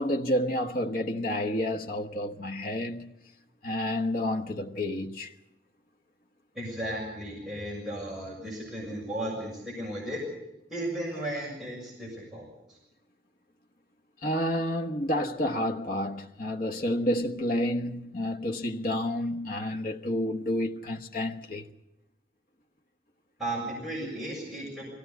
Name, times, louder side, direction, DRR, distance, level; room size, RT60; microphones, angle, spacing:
voice 1, 0.0-3.1 3.6-5.3 14.2-21.7, left 1 dB, 50° left, 1.3 m, -30 dB
voice 2, 6.5-10.2 10.7-12.8 23.4-24.9, right 1 dB, ahead, 6.9 m, -35 dB
24.0 x 17.0 x 8.2 m
head